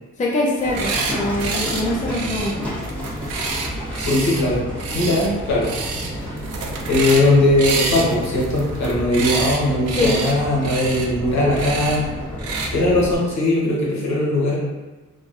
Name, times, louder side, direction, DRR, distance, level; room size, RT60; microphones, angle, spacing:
voice 1, 0.2-2.7 9.9-10.2, left 1 dB, 25° left, -3 dB, 0.5 m, -23 dB
Livestock farm animals working animals, 0.6-13.1, equal, 5° left, 1.1 m, -30 dB
sound 1, 0.6-1.1 1.4-1.8 2.1-4.4 4.8-5.3 5.6-6.1 6.4-7.3 7.6-9.6 9.9-10.3 10.6-11.1 11.5-12.0 12.4-12.7, right 4 dB, 55° right, 0.5 m, -27 dB
voice 2, 4.0-4.6 4.9-5.7 6.0-6.4 6.9-12.1 12.7-14.6, left 1 dB, 65° left, -5 dB, 1.1 m, -19 dB
3.0 x 2.5 x 2.5 m, 1.2 s
cardioid pair, 90°, 30 cm